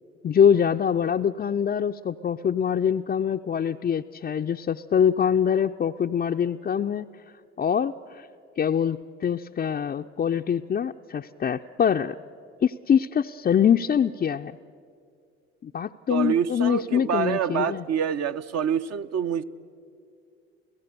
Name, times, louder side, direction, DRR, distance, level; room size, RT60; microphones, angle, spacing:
voice 1, 0.2-7.1 7.6-8.3 8.6-12.2 12.6-14.6 15.6-17.8, left 8 dB, 25° left, 3 dB, 0.5 m, -24 dB
voice 2, 16.1-19.4, right 8 dB, 50° right, 10 dB, 0.8 m, -26 dB
29.0 x 16.0 x 6.8 m, 2.4 s
hypercardioid pair, 55°, 34 cm